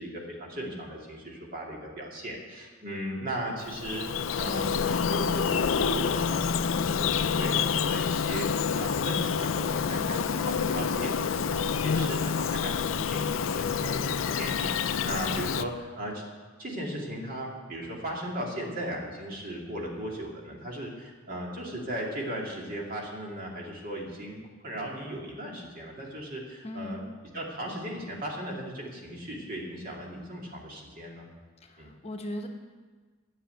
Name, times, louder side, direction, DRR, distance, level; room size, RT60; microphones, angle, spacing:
voice 1, 0.0-16.2 16.6-27.0 27.3-31.3 31.8-31.9, right 1 dB, 45° right, -1 dB, 2.4 m, -37 dB
Bird vocalization bird call bird song, 3.6-15.6, left 6 dB, 80° left, 0.4 m, -28 dB
voice 2, 26.6-27.0 31.6-32.5, left 1 dB, 30° left, 4 dB, 1.0 m, -38 dB
10.0 x 7.7 x 9.0 m, 1.4 s
head